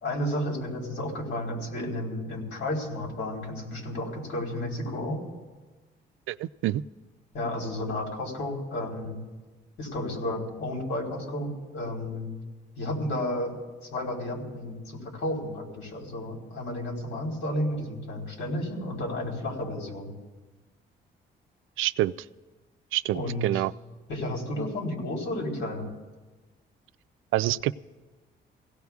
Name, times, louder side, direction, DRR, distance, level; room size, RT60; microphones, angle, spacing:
voice 1, 0.0-5.2 7.3-9.2 9.8-12.3 12.8-13.5 13.8-20.1 23.1-23.6 24.1-25.9, left 1 dB, 70° left, 0 dB, 3.9 m, -32 dB
voice 2, 6.3-6.8 21.8-22.1 22.9-23.7 27.3-27.9, right 15 dB, 85° right, 14 dB, 0.4 m, -27 dB
27.5 x 16.5 x 2.4 m, 1.3 s
cardioid pair, 90°, 20 cm